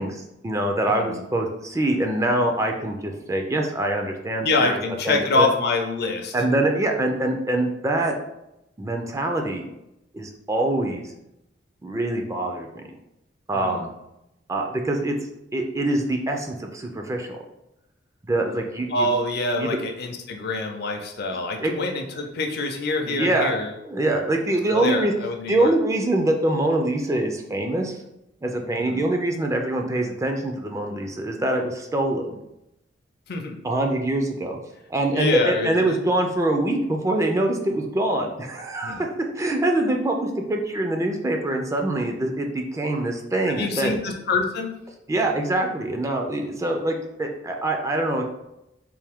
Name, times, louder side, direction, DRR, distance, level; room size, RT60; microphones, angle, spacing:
voice 1, 0.0-4.8 5.1-5.5 6.3-8.1 8.8-9.7 10.1-11.1 11.8-12.8 13.5-13.9 14.5-15.2 15.5-17.4 18.3-19.1 19.6-19.7 21.3-21.7 23.1-23.6 23.9-25.1 25.5-28.0 28.4-32.4 33.6-34.6 34.9-39.1 39.4-43.9 45.1-48.2, right 1 dB, 15° right, 3 dB, 0.3 m, -24 dB
voice 2, 0.9-1.2 4.4-6.3 13.5-13.8 18.9-23.7 24.7-25.7 28.7-29.0 33.3-33.6 35.1-36.0 38.8-39.0 43.5-44.7, left 3 dB, 55° left, 3 dB, 0.5 m, -25 dB
3.4 x 2.6 x 3.5 m, 0.87 s
head